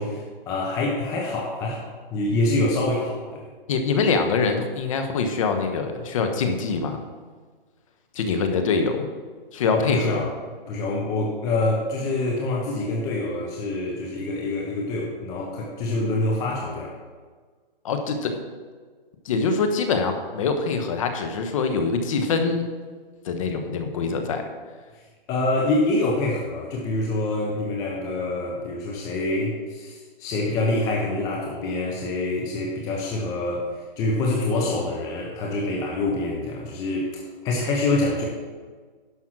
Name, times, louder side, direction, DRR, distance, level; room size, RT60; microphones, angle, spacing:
voice 1, 0.0-3.5 9.7-10.3 10.7-16.9 25.3-38.3, left 2 dB, 10° left, -2 dB, 0.7 m, -26 dB
voice 2, 3.7-7.0 8.2-9.1 9.5-10.2 17.8-18.4 19.2-22.7 23.2-24.4, left 4 dB, 35° left, 6 dB, 1.2 m, -24 dB
11.0 x 5.6 x 6.1 m, 1.5 s
hypercardioid pair, 155°, 29 cm